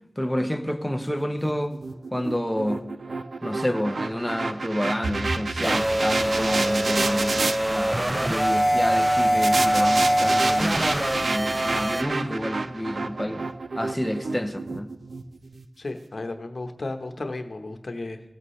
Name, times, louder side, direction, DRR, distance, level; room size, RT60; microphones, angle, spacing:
voice 1, 0.2-1.7 2.1-2.8 3.4-10.9 11.2-13.4 13.7-14.9, equal, 5° left, 0.9 m, -29 dB
sound 1, 1.4-7.6 9.4-15.6, right 3 dB, 80° right, 0.5 m, -30 dB
sound 2, 4.1-15.5, right 1 dB, 45° right, 2.0 m, -43 dB
sound 3, 5.6-12.0, right 1 dB, 20° right, 0.5 m, -23 dB
voice 2, 15.8-18.2, left 2 dB, 60° left, 1.0 m, -34 dB
17.0 x 8.4 x 3.2 m
wide cardioid pair, 60°, 0 cm